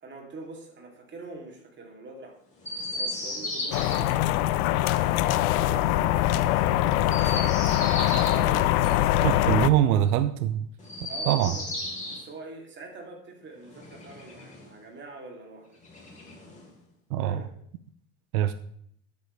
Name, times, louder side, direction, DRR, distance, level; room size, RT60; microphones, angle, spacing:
voice 1, 0.0-2.4 2.9-4.2 4.9-7.5 7.9-9.9 11.1-11.7 12.1-15.8 17.2-17.5, right 3 dB, 25° right, 1 dB, 2.8 m, -44 dB
Chirp tweet, 2.6-4.0 7.0-8.4 10.8-12.2 13.6-14.7 15.8-16.7, left 1 dB, 15° left, 3.5 m, -35 dB
sound 1, 3.7-9.7, left 14 dB, 75° left, 0.7 m, -23 dB
voice 2, 9.2-10.7 11.3-11.5 17.1-17.4 18.3-18.5, right 11 dB, 85° right, 12 dB, 0.7 m, -23 dB
12.5 x 8.6 x 3.3 m, 0.67 s
supercardioid pair, 120°, 42 cm